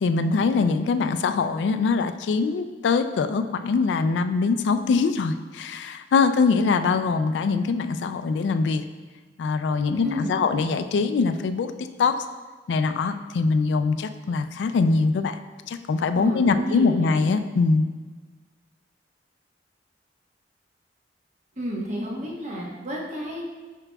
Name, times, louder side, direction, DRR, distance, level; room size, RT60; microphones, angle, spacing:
voice 1, 0.0-8.8 9.4-11.7 12.0-12.2 12.7-15.4 15.7-17.8, left 4 dB, 75° left, 10 dB, 0.3 m, -23 dB
voice 2, 9.9-10.4 16.1-17.1 21.6-23.4, equal, 45° right, -2 dB, 1.1 m, -31 dB
9.7 x 4.5 x 2.3 m, 1.4 s
head